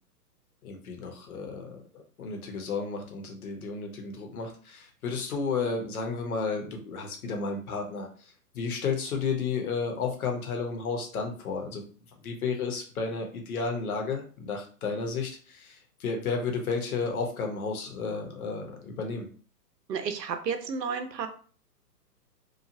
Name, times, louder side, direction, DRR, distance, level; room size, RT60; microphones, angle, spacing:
voice 1, 0.6-11.8 12.2-19.3, left 4 dB, 60° left, 3 dB, 1.0 m, -32 dB
voice 2, 19.9-21.3, right 6 dB, 80° right, 7 dB, 0.8 m, -32 dB
2.9 x 2.4 x 2.6 m, 0.41 s
hypercardioid pair, 135°, 50 cm